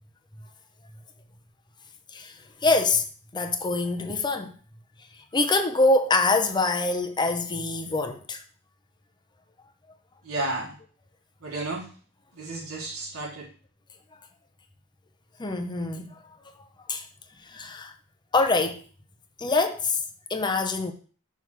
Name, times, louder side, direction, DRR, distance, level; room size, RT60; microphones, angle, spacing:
voice 1, 2.1-3.0 3.3-4.5 5.1-8.4 15.4-16.1 16.9-17.1 17.4-17.9 18.3-18.8 19.4-20.0 20.3-20.9, left 3 dB, 20° left, 0.7 m, -25 dB
voice 2, 10.2-10.8 11.4-11.9 12.3-13.5, right 2 dB, 85° right, 1.5 m, -32 dB
6.2 x 3.5 x 6.0 m
head